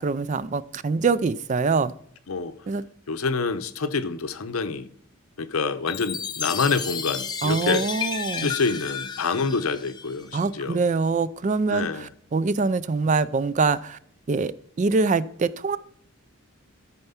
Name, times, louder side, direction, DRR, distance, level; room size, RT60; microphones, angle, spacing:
voice 1, 0.0-1.9 2.7-2.8 7.4-8.5 10.3-14.0 14.3-15.8, right 4 dB, 35° right, 0.3 m, -24 dB
voice 2, 3.1-4.9 5.4-7.9 8.4-10.8 11.7-12.1, left 4 dB, 80° left, 0.8 m, -27 dB
Chime, 5.9-10.4, left 6 dB, 20° left, 0.7 m, -32 dB
13.0 x 4.5 x 5.7 m
head